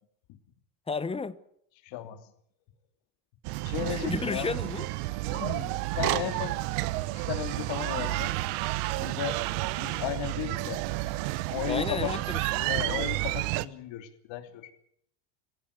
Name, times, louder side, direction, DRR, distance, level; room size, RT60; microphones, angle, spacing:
voice 1, 0.9-1.4 3.9-4.9 11.7-12.8, left 4 dB, 10° left, 1.0 m, -33 dB
voice 2, 1.8-2.3 3.6-4.5 5.3-6.6 7.1-8.3 8.9-9.4 9.8-10.8 11.5-12.2 12.7-14.7, left 13 dB, 65° left, 3.1 m, -35 dB
carrousel atraccio carrer sant adria sant andreu, 3.4-13.7, right 18 dB, 85° right, 1.1 m, -31 dB
24.5 x 16.0 x 8.4 m
cardioid pair, 130°, 48 cm